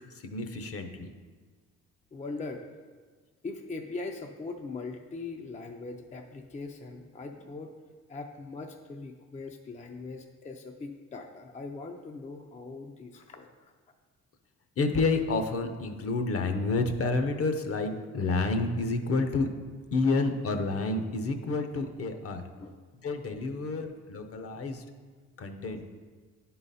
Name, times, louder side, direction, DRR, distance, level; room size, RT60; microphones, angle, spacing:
voice 1, 0.2-1.1 14.8-19.5 19.9-22.5 23.0-24.8 25.4-25.8, left 3 dB, 50° left, 7 dB, 0.8 m, -29 dB
voice 2, 2.1-2.8 3.4-7.7 8.1-13.5 22.6-22.7, left 3 dB, 25° left, 3 dB, 0.5 m, -40 dB
10.0 x 3.9 x 4.1 m, 1.5 s
cardioid pair, 90°, 30 cm